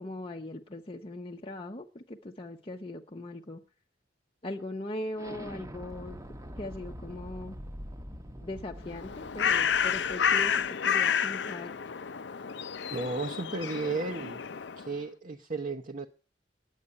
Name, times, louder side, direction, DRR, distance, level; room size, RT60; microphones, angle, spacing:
voice 1, 0.0-3.6 4.4-6.2 6.6-7.6 8.4-11.7, left 1 dB, 30° left, 0.8 m, -40 dB
Explosion, 5.2-10.7, equal, 20° right, 1.0 m, -44 dB
Bird, 8.9-14.9, left 7 dB, 65° left, 0.6 m, -30 dB
voice 2, 12.9-14.4 14.8-16.1, right 3 dB, 45° right, 0.9 m, -34 dB
10.0 x 8.2 x 9.8 m
head